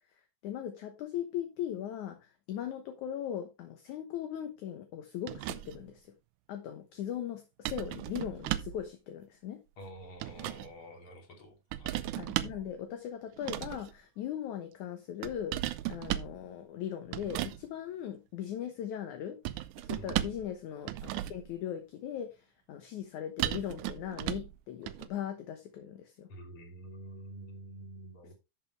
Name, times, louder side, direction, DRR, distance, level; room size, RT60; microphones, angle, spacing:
voice 1, 0.4-6.1 6.5-9.6 12.2-15.6 15.9-19.4 19.8-26.3 28.2-28.3, left 10 dB, 65° left, 2.3 m, -39 dB
sound 1, 5.3-5.9 7.7-8.9 9.9-10.7 11.7-12.7 13.4-13.9 15.2-16.4 17.1-17.6 19.5-20.5 20.8-21.5 23.4-24.6 24.9-25.1, right 14 dB, 80° right, 2.0 m, -35 dB
voice 2, 9.8-12.1 20.0-20.3 26.3-28.3, right 1 dB, 40° left, 3.4 m, -48 dB
12.0 x 7.4 x 3.2 m
omnidirectional pair, 4.1 m